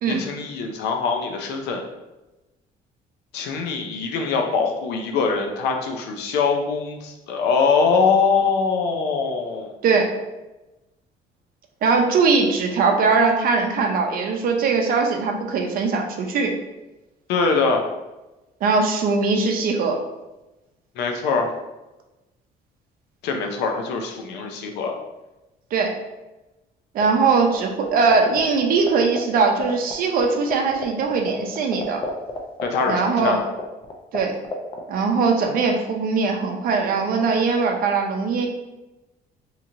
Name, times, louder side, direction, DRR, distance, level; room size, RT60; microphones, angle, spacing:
voice 1, 0.1-1.8 3.3-9.7 17.3-17.8 21.0-21.5 23.2-25.0 32.6-33.4, left 5 dB, 85° left, 3 dB, 0.5 m, -23 dB
voice 2, 11.8-16.5 18.6-20.0 25.7-25.9 26.9-32.0 32.9-33.4 34.1-34.3 34.9-38.5, right 4 dB, 60° right, 2 dB, 0.5 m, -20 dB
sound 1, 27.0-27.6 27.8-29.9 30.2-30.3 30.5-34.2 34.4-34.8, left 4 dB, 30° left, 0.5 m, -28 dB
2.8 x 2.8 x 2.5 m, 1.0 s
cardioid pair, 110°, 17 cm